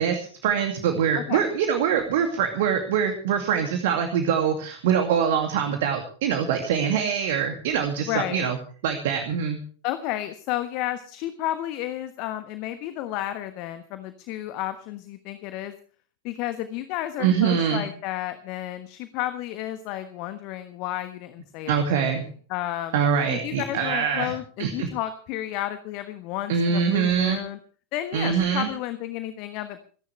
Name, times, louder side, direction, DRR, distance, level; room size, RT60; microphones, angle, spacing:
voice 1, 0.0-8.6 8.8-9.6 17.2-17.9 21.7-22.3 22.9-24.3 24.6-24.9 26.5-27.4 28.1-28.7, right 7 dB, 55° right, 6 dB, 2.4 m, -24 dB
voice 2, 1.1-1.5 8.1-8.5 9.8-15.7 16.2-23.0 23.3-27.6 27.9-29.8, left 13 dB, 45° left, 10 dB, 1.3 m, -32 dB
28.0 x 11.0 x 3.3 m, 0.42 s
figure-of-eight pair, 90°, 0 cm